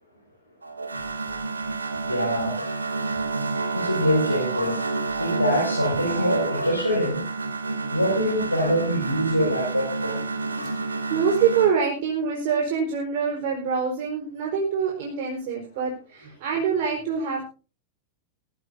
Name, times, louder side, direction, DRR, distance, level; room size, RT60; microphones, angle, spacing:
sound 1, 0.6-11.7, right 3 dB, 80° right, 2.6 m, -29 dB
voice 1, 2.0-2.6 3.7-4.8 5.2-7.2 7.9-10.2, equal, 90° left, -2 dB, 5.5 m, -24 dB
voice 2, 10.4-17.4, right 6 dB, 50° right, 0 dB, 4.5 m, -25 dB
22.0 x 14.5 x 2.7 m, 0.35 s
figure-of-eight pair, 90°, 0 cm